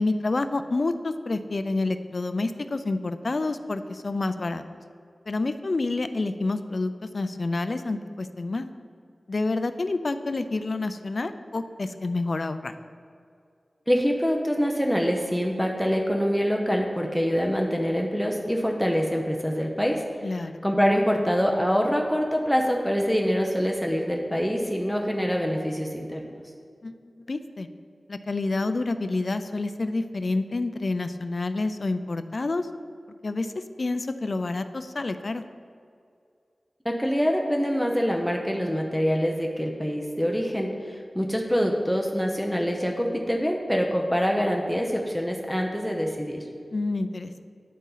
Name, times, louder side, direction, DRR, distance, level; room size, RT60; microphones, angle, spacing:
voice 1, 0.0-4.6 5.3-8.7 9.3-12.7 20.2-20.6 26.8-26.9 27.3-27.7 28.1-32.7 33.2-33.5 33.8-35.4 46.7-47.4, left 2 dB, 55° left, 10 dB, 0.3 m, -28 dB
voice 2, 13.9-20.0 20.6-26.2 36.8-40.7 41.1-46.4, equal, ahead, 1 dB, 0.6 m, -25 dB
9.3 x 4.1 x 3.8 m, 2.3 s
wide cardioid pair, 80°, 0 cm